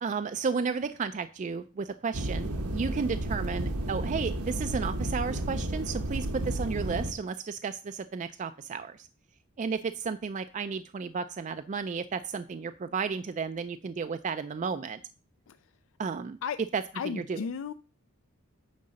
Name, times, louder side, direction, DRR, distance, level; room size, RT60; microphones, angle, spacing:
voice 1, 0.0-9.1 9.6-15.0 16.0-16.4 16.7-17.4, right 5 dB, 35° right, 9 dB, 0.3 m, -33 dB
sound 1, 2.1-7.1, right 1 dB, 85° right, 1.1 m, -32 dB
voice 2, 16.9-17.7, left 6 dB, 60° left, 12 dB, 0.4 m, -34 dB
9.5 x 3.9 x 6.3 m, 0.36 s
head